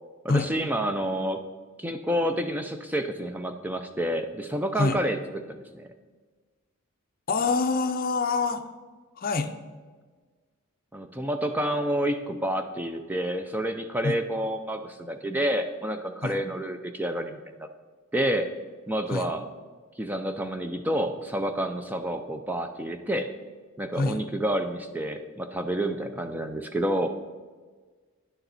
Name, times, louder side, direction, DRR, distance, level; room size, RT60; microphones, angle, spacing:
voice 1, 0.2-1.4 1.8-5.2 5.5-5.9 10.9-17.7 18.1-18.5 18.9-19.5 20.0-23.3 23.8-27.1, right 1 dB, 10° right, 6 dB, 0.4 m, -29 dB
voice 2, 7.3-8.7 9.2-9.5 14.0-14.2 16.2-16.4 19.1-19.3 23.9-24.2, left 3 dB, 40° left, 8 dB, 0.6 m, -26 dB
10.0 x 7.0 x 4.0 m, 1.4 s
head